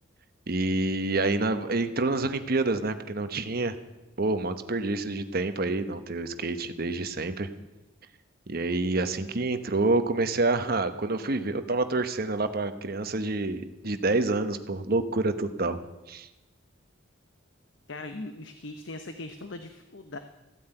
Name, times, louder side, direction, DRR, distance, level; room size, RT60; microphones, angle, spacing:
voice 1, 0.5-3.7 4.2-7.5 8.5-15.8 16.1-16.3, right 2 dB, 50° right, 10 dB, 1.1 m, -27 dB
voice 2, 17.9-20.2, left 2 dB, 65° left, 8 dB, 1.0 m, -40 dB
15.0 x 9.5 x 9.0 m, 1.0 s
head